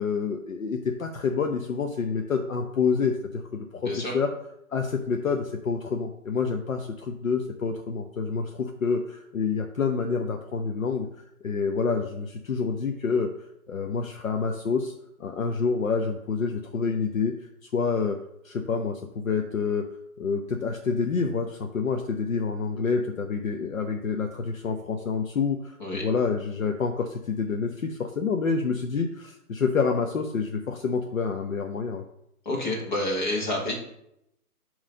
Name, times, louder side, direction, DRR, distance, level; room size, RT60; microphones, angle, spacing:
voice 1, 0.0-4.3 4.7-11.1 11.4-13.3 13.7-14.9 15.2-17.3 17.7-18.2 18.4-19.9 20.2-32.0, left 5 dB, 60° left, 4 dB, 0.8 m, -28 dB
voice 2, 32.5-33.7, left 1 dB, 30° left, -2 dB, 1.7 m, -28 dB
7.5 x 3.2 x 5.2 m, 0.80 s
hypercardioid pair, 170°, 45 cm